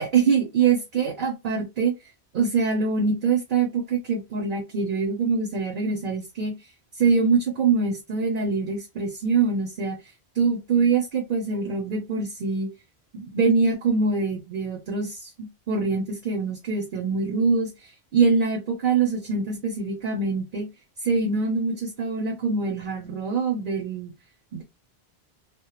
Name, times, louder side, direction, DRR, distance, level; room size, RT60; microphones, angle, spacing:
voice 1, 0.0-1.9 2.3-6.6 7.0-10.0 10.4-12.7 13.1-17.7 18.1-20.7 21.0-24.1 24.5-24.6, right 4 dB, 60° right, 0.7 m, -24 dB
2.1 x 2.1 x 2.8 m
omnidirectional pair, 1.1 m